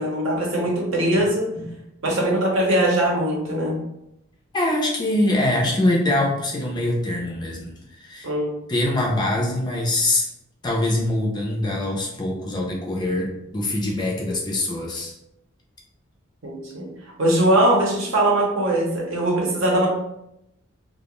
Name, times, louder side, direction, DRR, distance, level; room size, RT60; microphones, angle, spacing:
voice 1, 0.0-1.5 2.0-3.8 8.2-8.5 16.4-16.9 17.2-19.9, right 1 dB, 70° right, -2 dB, 0.7 m, -21 dB
voice 2, 1.2-1.7 4.5-8.3 8.7-10.3 10.6-15.1, left 1 dB, 20° left, -1 dB, 0.4 m, -24 dB
2.3 x 2.1 x 2.9 m, 0.84 s
head